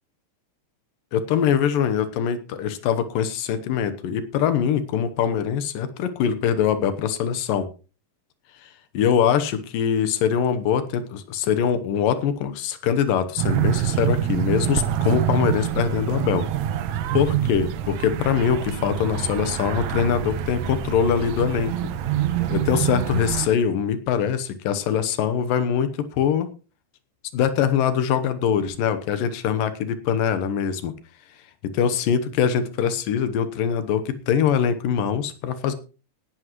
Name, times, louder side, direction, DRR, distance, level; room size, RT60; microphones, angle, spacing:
voice 1, 1.1-7.7 8.9-16.5 17.1-21.7 22.5-26.5 27.3-30.9 31.6-35.7, left 8 dB, 85° left, 11 dB, 2.8 m, -23 dB
sound 1, 13.4-23.5, right 10 dB, 70° right, 1.9 m, -26 dB
18.0 x 11.0 x 3.1 m, 0.34 s
omnidirectional pair, 3.8 m